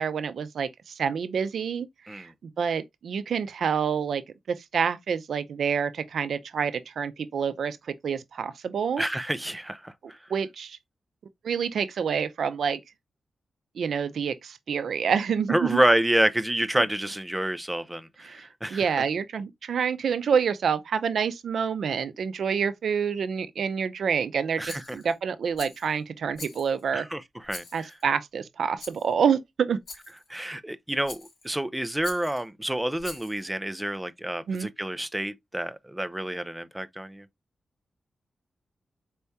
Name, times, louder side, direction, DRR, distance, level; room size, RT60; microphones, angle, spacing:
voice 1, 0.0-2.3 2.6-4.2 4.5-9.1 10.3-10.8 11.4-12.8 13.8-15.8 18.2-27.1 27.7-29.8 34.5-34.7, right 7 dB, 75° right, 0.5 m, -27 dB
voice 2, 9.0-10.2 15.5-18.9 24.6-25.0 26.9-27.9 30.3-37.3, right 1 dB, 10° right, 0.4 m, -28 dB
Rattle, 24.7-25.2 25.6-25.9 26.4-26.9 27.5-28.0 28.8-29.1 29.9-30.3 31.1-31.5 32.0-32.4 33.0-33.5, left 3 dB, 60° left, 2.7 m, -43 dB
4.5 x 3.4 x 2.6 m
wide cardioid pair, 120°, 0 cm